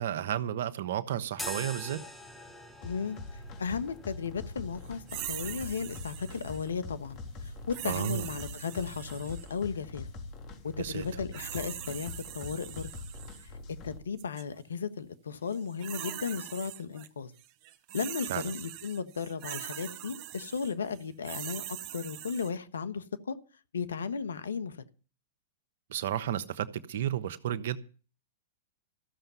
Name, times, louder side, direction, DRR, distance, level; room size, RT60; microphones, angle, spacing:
voice 1, 0.0-2.0 7.8-8.3 10.8-11.0 18.3-18.5 25.9-27.8, right 11 dB, 65° right, 1.1 m, -32 dB
sound 1, 1.3-9.8, left 1 dB, 5° left, 2.3 m, -47 dB
voice 2, 2.8-10.1 10.6-12.9 13.4-13.5 13.8-17.3 17.9-21.6 21.9-23.4 23.7-24.8, left 6 dB, 85° left, 1.2 m, -35 dB
sound 2, 2.8-14.0, left 3 dB, 40° left, 3.1 m, -44 dB
sound 3, 5.1-6.7 7.7-9.6 11.0-13.5 14.2-14.4 15.5-17.1 17.4-22.5, right 14 dB, 45° right, 1.0 m, -42 dB
14.5 x 6.8 x 9.3 m
hypercardioid pair, 110°, 0 cm